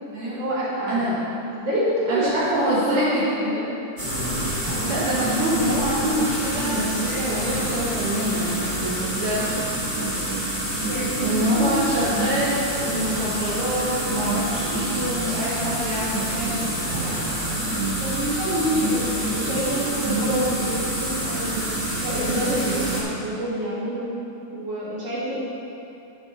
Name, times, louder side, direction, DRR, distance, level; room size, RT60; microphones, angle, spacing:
voice 1, 0.2-1.0 1.5-2.3 2.6-3.6 10.9-11.9 17.6-19.0 19.3-21.7 22.0-24.1 24.5-25.3, equal, 50° right, -9 dB, 3.0 m, -27 dB
voice 2, 0.9-1.2 2.1-3.3 4.8-9.5 11.2-16.7, right 1 dB, 75° right, -8 dB, 2.5 m, -26 dB
sound 1, 4.0-23.0, right 1 dB, 25° right, 1.0 m, -27 dB
11.0 x 6.0 x 4.0 m, 2.9 s
omnidirectional pair, 3.7 m